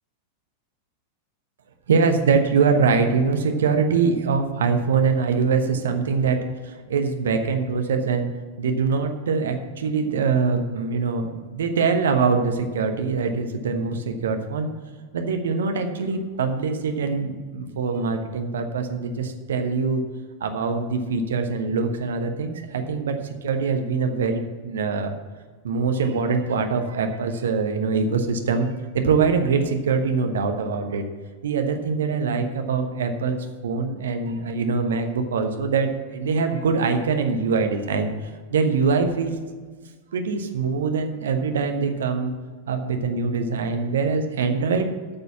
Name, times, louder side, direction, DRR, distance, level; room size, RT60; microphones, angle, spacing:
voice 1, 1.9-8.3 8.6-14.7 15.1-20.0 20.4-25.2 25.6-28.7 28.9-31.0 31.4-33.4 33.6-38.1 38.5-39.4 40.1-42.3 42.7-44.9, right 5 dB, 65° right, 6 dB, 1.1 m, -23 dB
8.8 x 6.8 x 7.1 m, 1.5 s
figure-of-eight pair, 90°, 0 cm